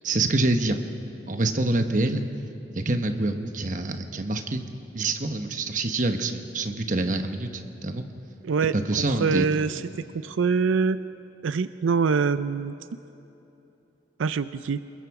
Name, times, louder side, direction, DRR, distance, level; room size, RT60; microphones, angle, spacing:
voice 1, 0.0-0.8 1.3-2.2 2.7-4.6 4.9-8.0 8.7-9.5, right 2 dB, 40° right, 7 dB, 1.1 m, -26 dB
voice 2, 8.4-8.7 9.2-9.8 10.1-11.0 11.4-12.7 14.2-14.8, right 5 dB, 90° right, 13 dB, 0.4 m, -24 dB
27.5 x 21.5 x 4.8 m, 2.9 s
head